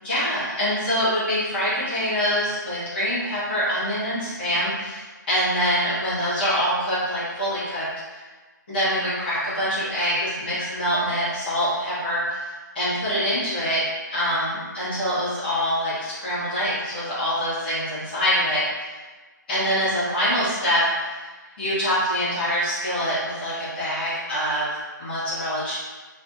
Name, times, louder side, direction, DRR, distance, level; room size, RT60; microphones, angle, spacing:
voice 1, 0.0-8.2 8.7-13.8 14.1-18.9 19.5-21.3 21.6-24.7 25.0-25.7, equal, 30° left, -10 dB, 1.3 m, -25 dB
3.2 x 2.6 x 2.6 m, 1.3 s
hypercardioid pair, 170°, 11 cm